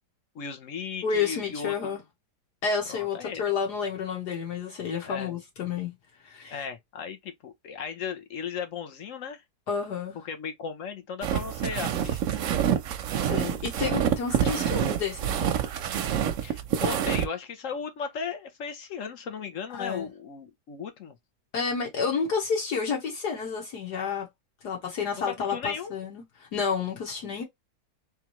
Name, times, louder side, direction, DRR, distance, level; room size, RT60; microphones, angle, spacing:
voice 1, 0.3-2.0 2.9-3.4 5.1-5.3 6.5-9.4 10.1-12.2 16.4-21.2 25.2-25.9, left 6 dB, 55° left, 1.1 m, -36 dB
voice 2, 1.0-2.0 2.6-5.9 6.2-6.6 9.7-10.2 13.2-15.5 19.7-20.1 21.5-24.3 24.6-27.4, left 6 dB, 70° left, 1.8 m, -30 dB
sound 1, 11.2-17.3, right 9 dB, 60° right, 0.9 m, -27 dB
3.6 x 3.1 x 2.9 m
omnidirectional pair, 1.8 m